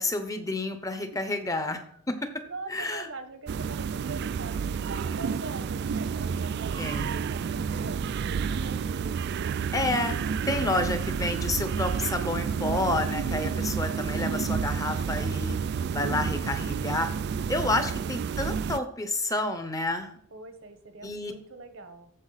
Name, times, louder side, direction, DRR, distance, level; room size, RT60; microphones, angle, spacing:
voice 1, 0.0-1.8 2.1-2.3 2.7-3.1 6.8-7.1 9.7-10.2 10.5-15.5 15.9-17.1 17.5-20.2 21.0-21.3, left 2 dB, 15° left, 8 dB, 0.8 m, -29 dB
voice 2, 2.5-9.1 20.3-22.1, right 3 dB, 70° right, 8 dB, 1.2 m, -43 dB
sound 1, 3.5-18.8, right 6 dB, 50° right, 0.3 m, -30 dB
14.0 x 4.9 x 4.0 m, 0.64 s
head